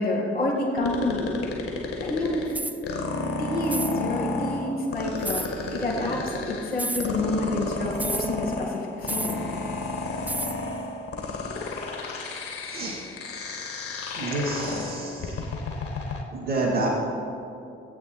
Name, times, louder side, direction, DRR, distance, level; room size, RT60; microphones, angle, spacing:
voice 1, 0.0-1.4 2.0-2.5 3.4-9.5, left 2 dB, 90° left, -5 dB, 1.8 m, -28 dB
sound 1, 0.8-16.2, left 3 dB, 50° left, 1.8 m, -32 dB
sound 2, 2.5-2.8 3.7-4.0 5.2-5.5 6.7-7.1 8.0-8.3 9.1-9.4 10.3-10.6, right 2 dB, 5° right, 0.4 m, -31 dB
voice 2, 12.7-13.0 14.2-15.3 16.3-17.0, right 2 dB, 80° right, -8 dB, 1.8 m, -28 dB
18.0 x 8.5 x 4.3 m, 2.7 s
figure-of-eight pair, 40°, 30 cm